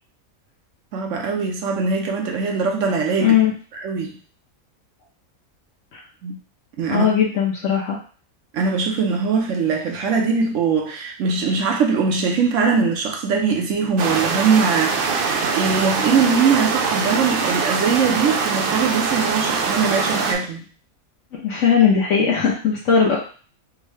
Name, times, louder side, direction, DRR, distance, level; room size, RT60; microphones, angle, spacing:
voice 1, 0.9-3.4 3.8-4.2 6.2-6.4 6.8-7.1 8.5-20.6, right 5 dB, 65° right, 1 dB, 0.9 m, -21 dB
voice 2, 3.2-3.5 5.9-6.0 6.9-8.0 21.3-23.2, left 7 dB, 65° left, -3 dB, 0.9 m, -18 dB
sound 1, 14.0-20.3, right 5 dB, 85° right, 0.4 m, -23 dB
3.6 x 2.1 x 3.2 m, 0.41 s
omnidirectional pair, 1.5 m